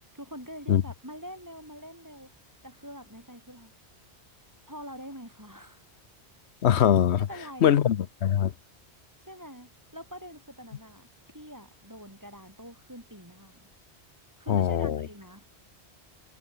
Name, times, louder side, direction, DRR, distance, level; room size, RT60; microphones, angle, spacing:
voice 1, 0.1-2.3 2.6-3.7 4.7-5.9 7.3-7.8 9.3-11.1 11.3-13.7 14.4-15.5, equal, 15° right, 5.9 m, -44 dB
voice 2, 6.6-7.3 7.6-8.5 14.5-15.1, left 9 dB, 80° left, 1.1 m, -22 dB
omnidirectional pair, 1.1 m